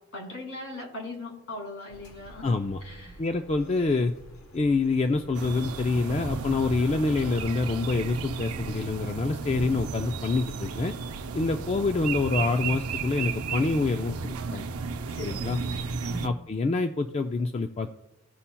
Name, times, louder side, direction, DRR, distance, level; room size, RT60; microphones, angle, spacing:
voice 1, 0.1-3.2 15.1-15.8 16.0-16.4, left 1 dB, 65° left, 0 dB, 2.2 m, -40 dB
sound 1, 1.9-8.2, right 1 dB, 85° left, 1.0 m, -50 dB
voice 2, 2.4-2.8 3.2-4.1 4.5-10.9 11.3-14.7 15.2-15.6 16.2-17.9, left 3 dB, 30° left, 6 dB, 0.3 m, -26 dB
sound 2, 5.3-16.3, right 5 dB, 90° right, 0.6 m, -34 dB
16.5 x 5.6 x 2.2 m, 0.90 s
head